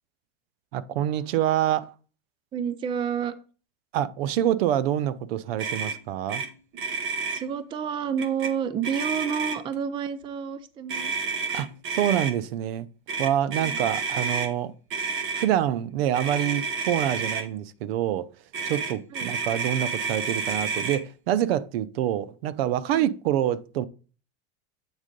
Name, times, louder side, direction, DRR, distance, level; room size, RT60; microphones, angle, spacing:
voice 1, 0.7-1.9 3.9-6.4 11.5-12.9 13.2-14.7 15.4-18.3 18.6-23.9, right 11 dB, 75° right, 0.6 m, -26 dB
voice 2, 2.5-3.3 7.3-11.1 13.6-14.0 19.1-19.3 22.9-23.1, right 7 dB, 15° right, 0.4 m, -30 dB
Motor vehicle (road), 5.6-6.0 6.3-6.5 6.7-7.4 8.2-8.5 8.8-9.7 10.9-12.3 13.1-14.5 14.9-15.5 16.1-17.4 18.5-21.0, right 4 dB, 40° right, 1.2 m, -30 dB
8.1 x 3.6 x 5.2 m
supercardioid pair, 135°, 30 cm